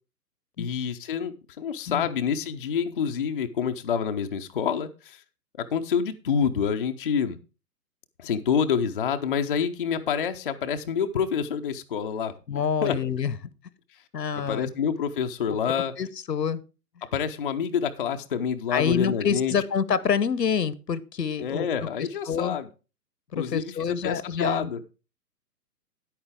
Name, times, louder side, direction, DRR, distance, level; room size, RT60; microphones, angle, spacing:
voice 1, 0.6-5.2 5.6-7.4 8.2-13.0 14.5-15.9 17.1-19.5 21.4-22.7 23.3-24.8, left 7 dB, 35° left, 0.5 m, -27 dB
voice 2, 12.5-13.3 14.1-14.7 16.0-16.6 18.7-21.7 22.0-22.6 23.3-24.7, left 7 dB, 75° left, 0.9 m, -27 dB
9.9 x 8.9 x 3.5 m
figure-of-eight pair, 130°, 50 cm